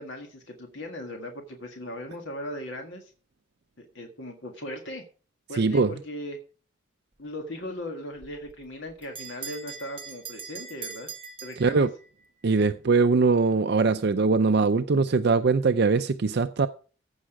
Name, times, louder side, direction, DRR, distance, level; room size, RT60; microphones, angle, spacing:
voice 1, 0.0-3.1 3.8-5.0 5.5-6.4 7.2-11.1 11.4-11.9, left 1 dB, 65° left, 1.7 m, -38 dB
voice 2, 5.6-5.9 11.6-11.9 12.4-16.7, right 4 dB, 55° right, 0.5 m, -22 dB
Bell, 8.2-12.3, right 5 dB, 25° right, 1.1 m, -42 dB
15.0 x 6.1 x 4.7 m
head